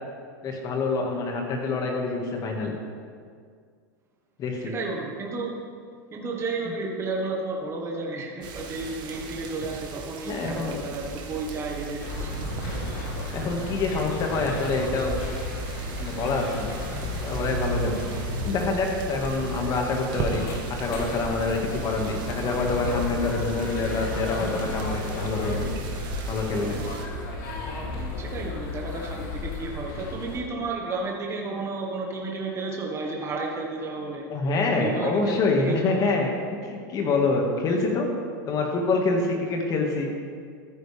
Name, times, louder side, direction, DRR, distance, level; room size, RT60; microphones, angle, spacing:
voice 1, 0.4-2.8 4.4-4.7 10.2-10.8 13.3-15.2 16.0-16.8 17.2-25.7 26.3-26.8 34.3-36.3 36.6-38.1 38.5-40.1, left 3 dB, 35° left, 1 dB, 1.9 m, -26 dB
voice 2, 4.6-5.5 6.1-12.4 28.2-34.2 34.8-36.0, right 3 dB, 25° right, 0 dB, 1.5 m, -32 dB
sound 1, 8.4-27.0, right 5 dB, 45° right, 1.5 m, -38 dB
sound 2, 12.0-30.4, left 2 dB, 65° left, 2.4 m, -33 dB
sound 3, 12.3-18.6, right 2 dB, 80° right, 2.8 m, -43 dB
13.5 x 9.8 x 3.5 m, 2.1 s
supercardioid pair, 130°, 11 cm